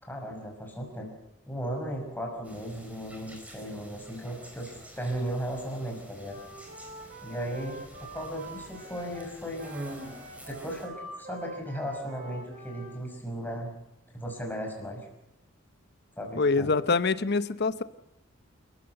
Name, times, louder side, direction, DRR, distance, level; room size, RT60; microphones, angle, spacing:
voice 1, 0.0-1.1 1.5-4.7 5.0-6.4 7.2-9.7 10.5-13.7 14.1-15.1 16.2-16.7, equal, 10° left, 1 dB, 5.8 m, -36 dB
sound 1, 2.4-10.9, right 1 dB, 5° right, 4.3 m, -47 dB
Wind instrument woodwind instrument, 6.2-13.0, right 2 dB, 40° right, 7.4 m, -45 dB
voice 2, 16.4-17.8, left 4 dB, 55° left, 14 dB, 0.9 m, -25 dB
29.5 x 14.5 x 7.9 m, 0.87 s
head